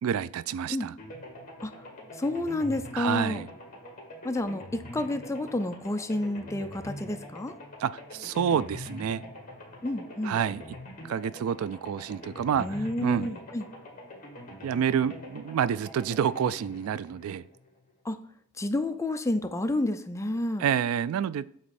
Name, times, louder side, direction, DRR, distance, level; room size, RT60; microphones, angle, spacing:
voice 1, 0.0-0.9 2.9-3.5 7.8-9.2 10.2-10.6 11.1-13.4 14.6-17.4 20.6-21.4, right 8 dB, 70° right, 0.3 m, -28 dB
sound 1, 1.0-17.9, left 1 dB, 40° left, 1.7 m, -44 dB
voice 2, 2.2-3.4 4.2-7.5 9.8-10.4 12.6-13.6 18.0-18.2 18.6-20.7, left 1 dB, 15° left, 0.4 m, -30 dB
7.8 x 3.1 x 4.2 m
head